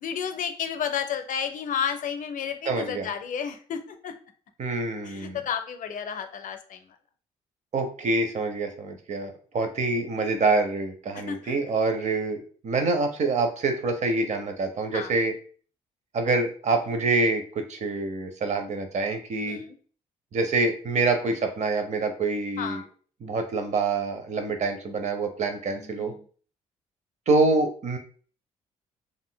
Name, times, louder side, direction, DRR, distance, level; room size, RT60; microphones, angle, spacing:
voice 1, 0.0-4.1 5.0-6.8 11.1-11.6 14.9-15.1 19.5-19.8 22.6-22.9 25.7-26.2, left 7 dB, 60° left, 8 dB, 0.5 m, -32 dB
voice 2, 2.6-3.1 4.6-5.4 7.7-15.3 16.1-19.6 20.3-22.8 23.2-26.1 27.3-28.0, right 3 dB, 50° right, 6 dB, 0.7 m, -26 dB
3.7 x 2.4 x 2.2 m, 0.43 s
supercardioid pair, 60°, 15 cm